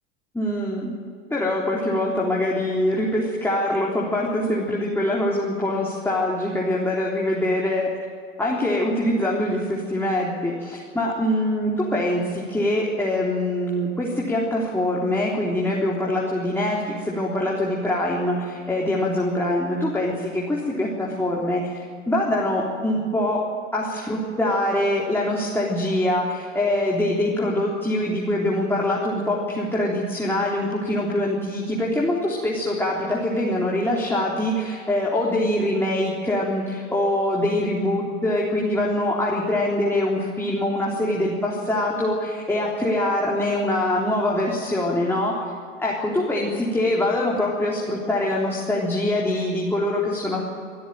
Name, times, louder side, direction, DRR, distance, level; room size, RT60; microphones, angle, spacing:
voice 1, 0.3-0.9 1.3-7.9 8.4-21.8 22.1-23.4 23.7-45.4 45.8-50.4, left 1 dB, 5° left, -4 dB, 3.7 m, -24 dB
26.0 x 13.0 x 9.0 m, 2.3 s
figure-of-eight pair, 75°, 38 cm